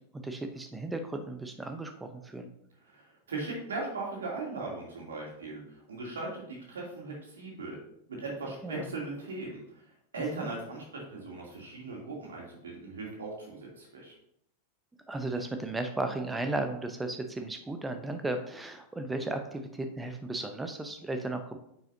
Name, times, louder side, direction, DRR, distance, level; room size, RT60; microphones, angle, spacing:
voice 1, 0.1-2.5 8.6-8.9 10.3-10.5 15.1-21.6, right 2 dB, 10° right, 7 dB, 0.9 m, -35 dB
voice 2, 2.8-7.8 8.1-9.6 10.1-14.1, right 3 dB, 65° right, -2 dB, 3.1 m, -38 dB
9.2 x 7.7 x 2.8 m, 0.74 s
figure-of-eight pair, 90°, 0 cm